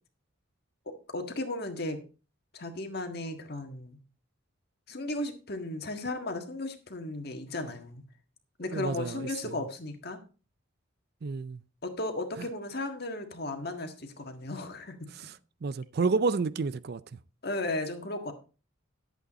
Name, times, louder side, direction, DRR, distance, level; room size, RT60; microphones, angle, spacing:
voice 1, 0.8-2.0 2.5-4.0 4.9-8.0 8.6-10.2 11.8-15.3 17.4-18.3, left 2 dB, 50° left, 1.6 m, -35 dB
voice 2, 8.7-9.3 11.2-11.6 15.6-17.0, right 4 dB, 50° right, 0.4 m, -29 dB
11.5 x 8.2 x 4.1 m
head